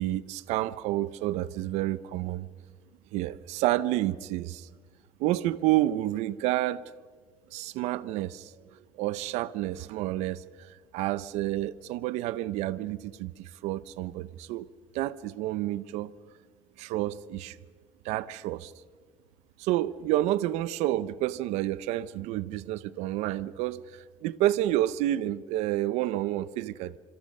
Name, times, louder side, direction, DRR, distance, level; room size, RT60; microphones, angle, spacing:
voice 1, 0.0-2.5 3.1-4.7 5.2-6.8 7.5-14.7 14.9-16.1 16.8-17.6 18.0-18.7 19.6-27.0, right 15 dB, 85° right, 0.7 m, -29 dB
26.5 x 26.5 x 5.4 m
cardioid pair, 160°, 11 cm